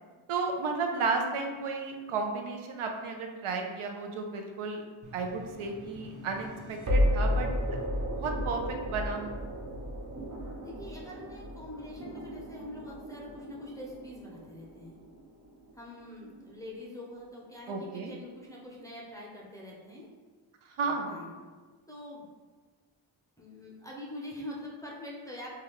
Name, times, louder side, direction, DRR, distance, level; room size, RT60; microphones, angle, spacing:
voice 1, 0.3-4.8 5.1-7.5 8.0-9.4 17.7-18.1 20.7-21.2, right 4 dB, 80° right, 2 dB, 0.6 m, -33 dB
sound 1, 5.0-16.1, equal, 35° right, 0.6 m, -34 dB
voice 2, 10.6-14.9 15.7-20.1 21.1-21.4 21.9-22.3 23.4-25.5, left 1 dB, 5° left, -4 dB, 0.5 m, -44 dB
3.3 x 2.3 x 2.9 m, 1.4 s
wide cardioid pair, 105°, 50 cm